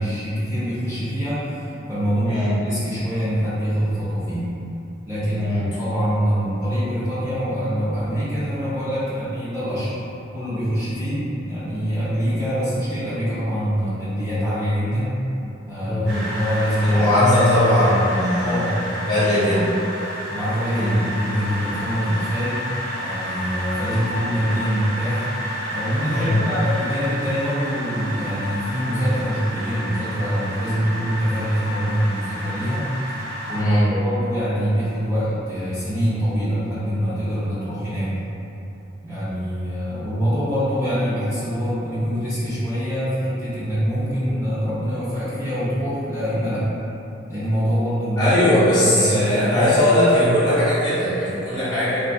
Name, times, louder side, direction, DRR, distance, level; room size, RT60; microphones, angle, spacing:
voice 1, 0.0-4.5 5.1-9.9 10.3-15.2 15.7-18.0 18.4-18.9 19.3-19.5 20.3-22.6 23.0-25.2 25.7-32.9 33.5-38.1 39.0-46.7 47.3-48.3 48.8-49.8, equal, 15° right, -14 dB, 0.5 m, -24 dB
voice 2, 2.2-2.5 5.4-5.7 15.9-16.2 16.8-18.7 19.1-19.6 20.7-21.0 26.1-26.4 33.6-33.9 48.2-52.1, left 1 dB, 25° left, -12 dB, 1.0 m, -19 dB
sound 1, 16.1-33.6, equal, 55° right, 0.7 m, -31 dB
3.6 x 2.3 x 2.3 m, 3.0 s
head